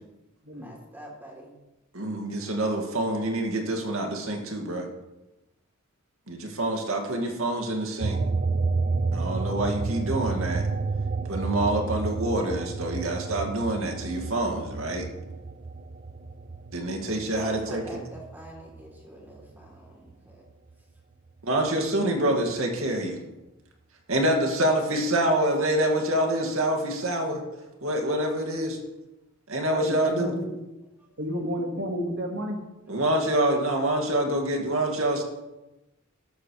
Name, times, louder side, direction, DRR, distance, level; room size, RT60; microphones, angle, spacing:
voice 1, 0.5-1.6 17.1-20.4 31.0-31.1, right 1 dB, 10° right, -2 dB, 3.3 m, -45 dB
voice 2, 1.9-4.9 6.3-8.2 9.1-10.7 11.3-15.1 16.7-18.0 21.4-23.2 24.1-27.4 27.8-28.8 29.5-30.3 32.9-35.2, right 1 dB, 85° right, 2 dB, 2.2 m, -26 dB
sound 1, 8.0-18.9 19.3-20.7, right 4 dB, 40° right, 0.5 m, -30 dB
voice 3, 29.7-30.6 31.2-32.6, equal, 60° right, 2 dB, 1.8 m, -31 dB
12.5 x 12.5 x 3.3 m, 1.0 s
head